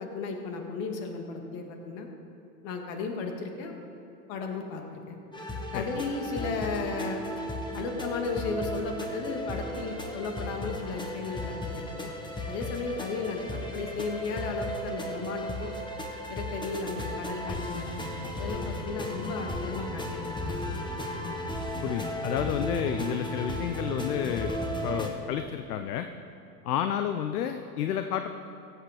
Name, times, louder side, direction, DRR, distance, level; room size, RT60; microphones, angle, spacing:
voice 1, 0.0-2.1 2.6-3.7 4.3-5.2 5.7-7.2 7.7-12.1 12.5-15.7 16.3-18.0 18.4-20.6 24.8-24.9, left 4 dB, 55° left, 3 dB, 1.9 m, -35 dB
sound 1, 5.3-25.1, left 1 dB, 10° left, 1.3 m, -35 dB
voice 2, 21.8-24.6 24.8-26.1 26.6-28.3, left 10 dB, 70° left, 8 dB, 0.8 m, -30 dB
15.5 x 8.1 x 4.9 m, 2.9 s
hypercardioid pair, 105°, 47 cm